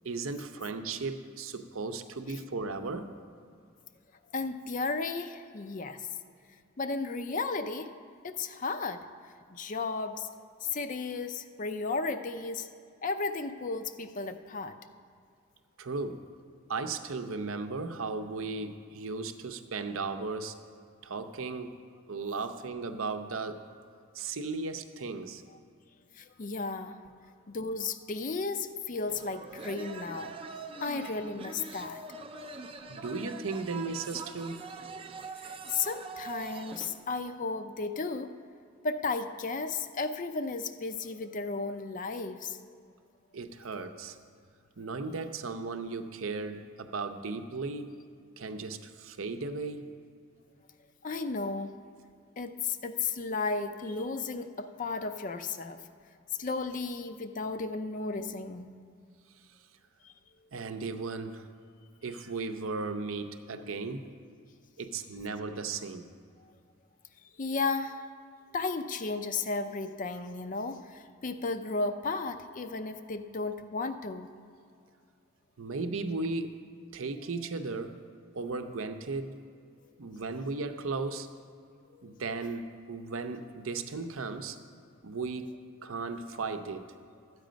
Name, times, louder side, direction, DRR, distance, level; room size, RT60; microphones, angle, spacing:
voice 1, 0.0-3.1 15.8-16.2 16.7-20.6 21.0-21.7 22.1-23.7 24.1-25.4 32.9-34.6 43.3-44.2 44.8-47.9 48.4-49.9 60.5-61.5 62.0-64.1 64.8-66.1 75.6-76.6 76.9-78.0 78.3-79.4 80.0-81.3 82.0-84.6 85.0-85.5 85.8-86.9, right 3 dB, 70° right, 8 dB, 0.6 m, -36 dB
voice 2, 4.3-6.0 6.8-9.0 9.5-10.3 10.6-12.7 13.0-14.7 26.1-27.1 27.5-30.3 30.8-32.0 35.4-38.5 38.8-42.9 51.0-51.7 52.4-55.8 56.4-58.7 60.0-60.1 67.4-68.1 68.5-74.3 81.9-82.1, left 3 dB, 35° left, 9 dB, 0.5 m, -34 dB
sound 1, 29.1-36.9, right 4 dB, 25° right, 0.4 m, -43 dB
12.5 x 8.3 x 5.1 m, 2.3 s
head